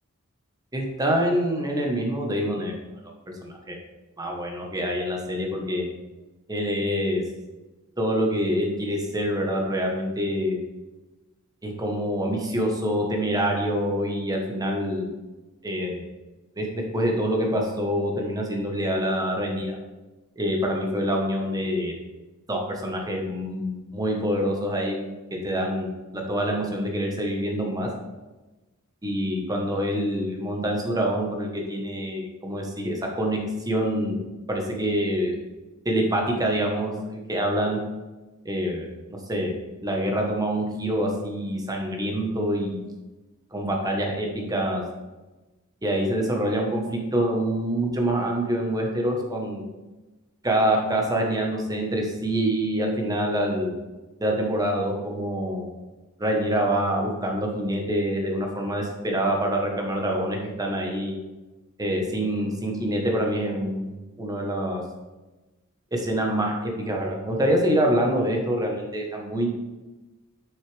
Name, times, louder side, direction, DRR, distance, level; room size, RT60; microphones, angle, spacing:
voice 1, 0.7-2.7 3.4-3.7 4.2-5.8 6.5-7.2 8.0-10.6 11.6-15.1 15.6-16.1 16.6-19.8 20.4-21.9 22.5-25.1 25.4-27.9 29.0-33.4 33.7-34.2 34.5-35.4 35.8-37.8 38.4-39.5 39.8-42.8 43.5-44.8 45.8-49.6 50.4-53.7 54.2-55.7 56.2-61.1 61.8-64.8 65.9-69.5, equal, 15° right, 1 dB, 1.1 m, -26 dB
6.5 x 6.3 x 3.4 m, 1.1 s
head